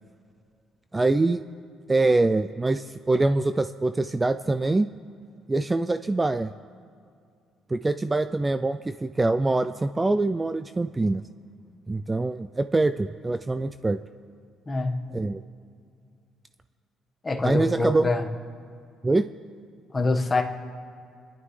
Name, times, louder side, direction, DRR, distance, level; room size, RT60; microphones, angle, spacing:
voice 1, 0.9-1.4 1.9-4.9 5.5-6.5 7.7-11.2 11.9-14.0 15.1-15.4 17.4-18.1 19.0-19.3, right 2 dB, 15° right, 10 dB, 0.3 m, -24 dB
voice 2, 14.7-15.1 17.2-18.3 19.9-20.4, left 3 dB, 20° left, 3 dB, 1.3 m, -25 dB
30.0 x 11.0 x 3.2 m, 2.4 s
cardioid pair, 105°, 0 cm